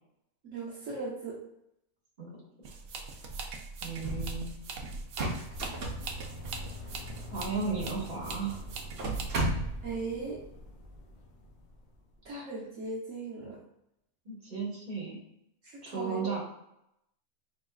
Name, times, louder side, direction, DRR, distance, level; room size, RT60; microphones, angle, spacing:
voice 1, 0.4-1.4 9.8-10.4 12.2-13.6 15.6-16.3, right 3 dB, 65° right, -5 dB, 1.2 m, -38 dB
sound 1, 2.6-9.2, right 4 dB, 85° right, 1.1 m, -42 dB
voice 2, 3.8-4.5 7.2-8.5 14.2-15.2 15.8-16.4, right 4 dB, 35° right, -4 dB, 1.6 m, -35 dB
sound 2, 4.0-4.6 4.9-7.1 7.9-8.0 8.2-8.3 8.8-10.0, right 1 dB, 50° right, 0.9 m, -34 dB
sound 3, 5.5-12.2, equal, 75° left, 1.2 m, -45 dB
4.6 x 4.0 x 2.3 m, 0.80 s
omnidirectional pair, 1.5 m